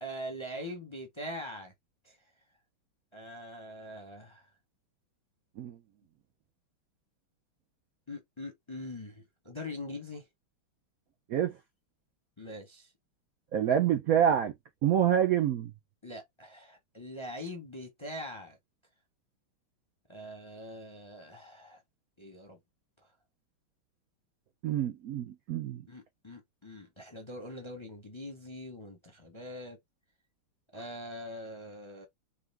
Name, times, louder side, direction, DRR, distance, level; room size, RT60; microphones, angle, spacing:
voice 1, 0.0-1.7 2.0-2.2 3.1-4.5 8.1-10.2 12.4-12.9 16.0-18.6 20.1-21.8 22.2-22.6 25.9-29.8 30.7-32.1, left 1 dB, 25° left, 0.6 m, -43 dB
voice 2, 13.5-14.5 14.8-15.7 24.6-25.8, right 9 dB, 85° right, 0.7 m, -26 dB
4.8 x 2.8 x 3.4 m
omnidirectional pair, 2.4 m